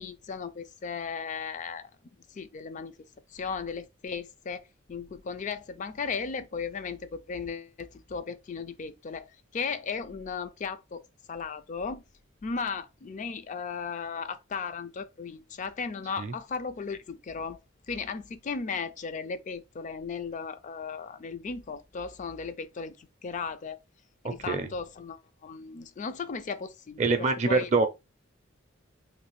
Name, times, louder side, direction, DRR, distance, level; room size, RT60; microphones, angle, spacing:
voice 1, 0.0-1.9 2.3-3.0 3.3-4.6 4.9-11.0 11.3-12.0 12.4-17.6 17.9-23.8 24.2-27.7, left 5 dB, 40° left, 0.4 m, -36 dB
voice 2, 24.2-24.7 27.0-27.9, right 4 dB, 35° right, 0.5 m, -25 dB
3.2 x 2.4 x 3.1 m
head